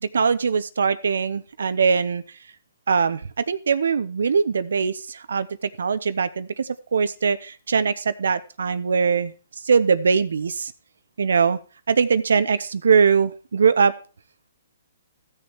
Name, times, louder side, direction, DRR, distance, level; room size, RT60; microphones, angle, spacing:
voice 1, 0.0-2.2 2.9-5.5 5.8-9.3 9.7-10.7 11.2-11.6 11.9-13.9, right 5 dB, 80° right, 15 dB, 0.7 m, -21 dB
15.5 x 6.5 x 3.0 m, 0.35 s
hypercardioid pair, 145°, 0 cm